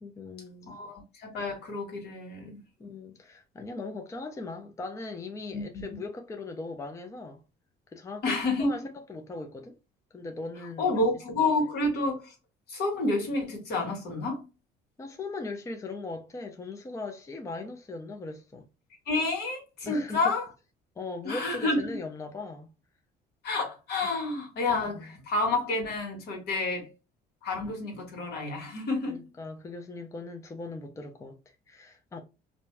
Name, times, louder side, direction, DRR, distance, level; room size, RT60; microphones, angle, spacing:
voice 1, 0.0-0.8 2.8-7.4 7.9-9.8 10.1-11.0 11.4-11.5 15.0-18.7 19.9-20.3 21.0-22.7 24.9-25.1 29.1-32.2, left 3 dB, 20° left, 0.5 m, -39 dB
voice 2, 0.7-2.6 5.5-5.8 8.2-8.8 10.8-12.3 12.7-14.4 19.1-20.5 21.2-21.8 23.4-26.9 27.4-29.3, left 2 dB, 75° left, 1.5 m, -29 dB
2.6 x 2.3 x 3.2 m
cardioid pair, 110°, 17 cm